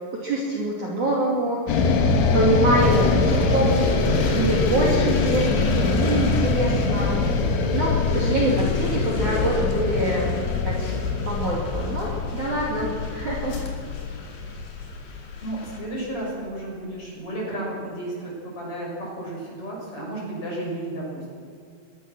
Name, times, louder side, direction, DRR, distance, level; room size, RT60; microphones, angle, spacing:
voice 1, 0.1-1.8 2.3-3.1 3.5-3.8 4.3-7.2 7.7-11.0 11.2-13.6, right 2 dB, 45° right, -3 dB, 3.6 m, -25 dB
sound 1, 1.7-15.9, left 4 dB, 75° left, 4.2 m, -23 dB
sound 2, 2.8-15.8, left 3 dB, 45° left, 3.4 m, -39 dB
voice 2, 2.9-3.7 15.4-21.3, right 1 dB, 25° left, -4 dB, 8.0 m, -33 dB
22.5 x 21.5 x 6.4 m, 2.2 s
omnidirectional pair, 5.6 m